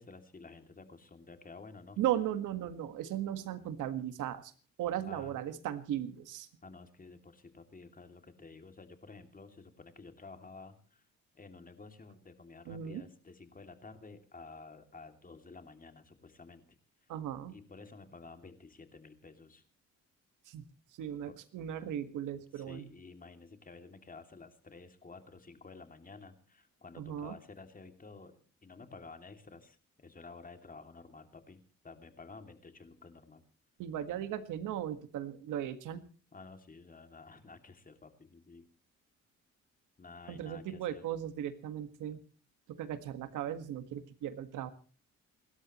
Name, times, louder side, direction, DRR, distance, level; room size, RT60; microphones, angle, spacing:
voice 1, 0.0-2.0 5.1-5.5 6.6-11.1 11.3-17.1 17.5-19.6 21.3-21.4 22.1-33.4 36.3-38.7 40.0-41.0, left 4 dB, 30° left, 7 dB, 2.7 m, -52 dB
voice 2, 2.0-4.5 4.8-6.5 12.7-13.0 17.1-17.6 20.5-20.6 21.0-22.9 27.0-27.4 33.8-36.0 40.3-42.2 42.7-44.7, right 11 dB, 85° right, 11 dB, 1.7 m, -37 dB
29.0 x 12.5 x 3.1 m, 0.38 s
cardioid pair, 90°, 30 cm